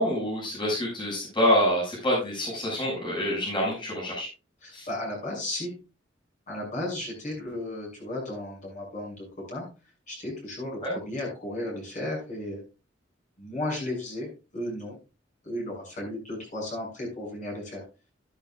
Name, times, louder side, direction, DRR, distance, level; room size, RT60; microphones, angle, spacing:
voice 1, 0.0-4.3 4.7-4.9 10.8-10.9, equal, 25° left, -5 dB, 6.7 m, -26 dB
voice 2, 4.6-5.7 6.5-9.7 10.1-12.6 13.4-15.0 15.4-17.8, left 1 dB, 40° left, -2 dB, 7.3 m, -34 dB
12.5 x 12.0 x 2.5 m, 0.30 s
head